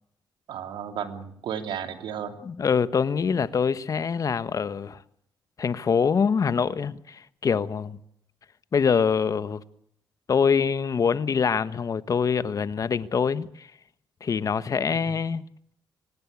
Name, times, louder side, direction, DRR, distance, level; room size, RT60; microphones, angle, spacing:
voice 1, 0.5-2.4 14.9-15.2, right 8 dB, 85° right, 2.9 m, -34 dB
voice 2, 2.4-5.0 5.6-8.0 8.7-9.6 10.3-13.7 14.2-15.4, left 6 dB, 45° left, 1.3 m, -24 dB
25.0 x 19.0 x 8.5 m
cardioid pair, 100°, 8 cm